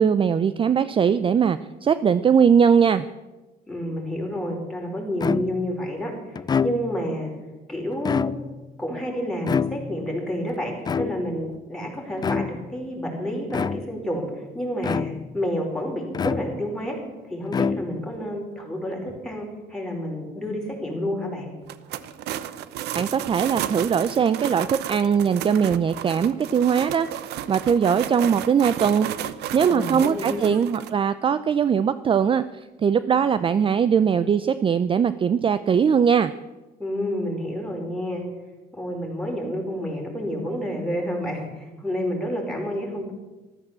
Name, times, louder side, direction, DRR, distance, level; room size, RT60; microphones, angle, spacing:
voice 1, 0.0-3.1 23.0-27.1 27.5-29.1 29.5-36.3, right 7 dB, 30° right, 14 dB, 0.5 m, -20 dB
voice 2, 3.7-7.3 7.7-8.3 8.8-14.2 14.5-17.0 17.2-21.5 29.6-30.5 36.8-38.2 38.7-43.1, equal, 5° left, -1 dB, 5.2 m, -29 dB
sound 1, 5.2-5.8 6.3-7.1 7.9-8.7 9.5-10.1 10.8-11.5 12.2-12.7 13.5-14.1 14.8-15.4 16.1-16.8 17.5-18.2, left 6 dB, 25° left, 0.4 m, -27 dB
sound 2, 21.6-30.9, right 11 dB, 80° right, 0.9 m, -33 dB
14.0 x 13.0 x 7.5 m, 1.1 s
cardioid pair, 110°, 17 cm